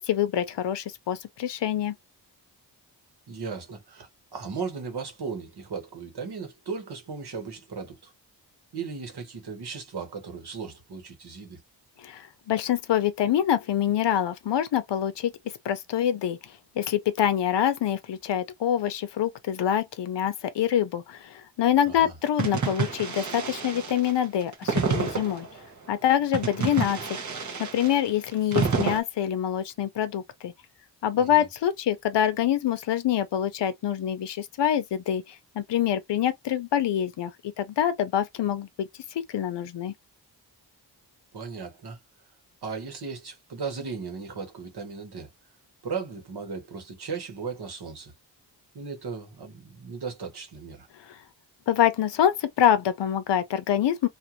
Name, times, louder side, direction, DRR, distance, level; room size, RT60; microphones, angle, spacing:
voice 1, 0.0-1.9 12.0-15.3 15.6-25.5 25.9-27.2 27.6-30.5 31.0-39.9 51.1-51.2 51.7-54.1, left 10 dB, 75° left, 0.7 m, -26 dB
voice 2, 3.3-8.1 8.7-11.6 21.8-22.1 31.2-31.5 41.3-42.0 42.6-45.3 45.8-48.1 48.7-50.9, right 5 dB, 65° right, 1.3 m, -36 dB
sound 1, 22.4-25.6 26.3-29.0, right 5 dB, 45° right, 0.9 m, -29 dB
2.5 x 2.5 x 2.9 m
wide cardioid pair, 140°, 42 cm